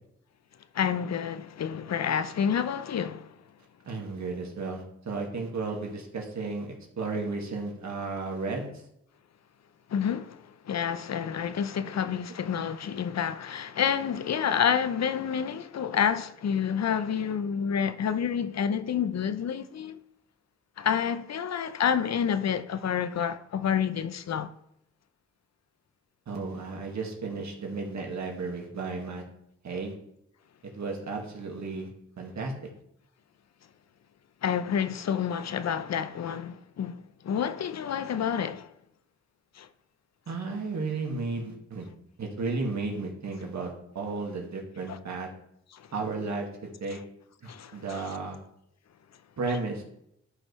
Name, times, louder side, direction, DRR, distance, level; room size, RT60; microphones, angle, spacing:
voice 1, 0.7-3.3 9.9-20.0 20.8-24.5 34.4-38.7 39.6-39.7 44.9-45.0 45.7-45.8 46.9-47.0 47.5-48.1 49.5-49.6, left 8 dB, 60° left, 0.6 m, -29 dB
voice 2, 3.9-8.7 11.8-11.9 26.3-29.2 29.6-30.0 30.6-31.9 32.2-32.5 40.3-41.9 42.2-45.3 45.9-47.0 47.4-48.4 49.4-49.8, right 3 dB, 70° right, 1.9 m, -33 dB
12.0 x 5.3 x 3.2 m
cardioid pair, 45°, 29 cm